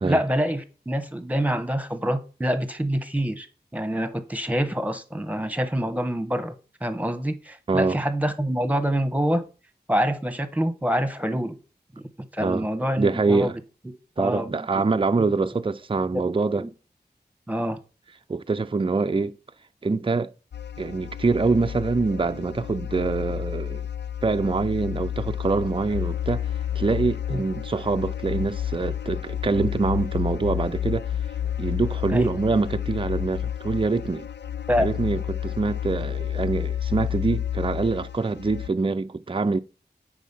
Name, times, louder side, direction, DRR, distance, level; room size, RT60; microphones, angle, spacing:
voice 1, 0.0-3.5 3.7-6.5 6.8-9.4 9.9-11.6 12.3-13.6 14.2-14.5 15.2-15.3 16.1-16.7 17.5-17.8 27.3-27.4 32.1-32.3 34.7-34.9, equal, 10° right, 1.2 m, -26 dB
voice 2, 7.7-8.0 12.4-12.7 13.0-13.5 14.2-16.6 18.3-19.4 19.8-20.3 20.8-23.9 24.2-26.5 26.8-31.0 31.6-34.3 34.8-39.6, right 3 dB, 30° right, 0.5 m, -25 dB
sound 1, 20.5-38.7, left 10 dB, 80° left, 0.5 m, -30 dB
8.3 x 5.0 x 5.5 m
wide cardioid pair, 55°, 18 cm